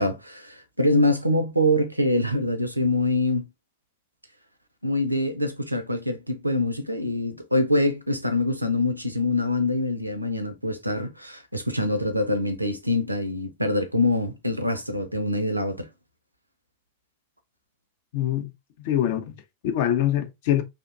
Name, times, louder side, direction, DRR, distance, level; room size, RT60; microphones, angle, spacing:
voice 1, 0.0-3.4 4.8-15.9, left 1 dB, 85° right, 0.3 m, -24 dB
voice 2, 18.1-18.5 18.8-20.6, left 11 dB, 50° left, 0.4 m, -24 dB
2.6 x 2.1 x 2.2 m
figure-of-eight pair, 90°, 0 cm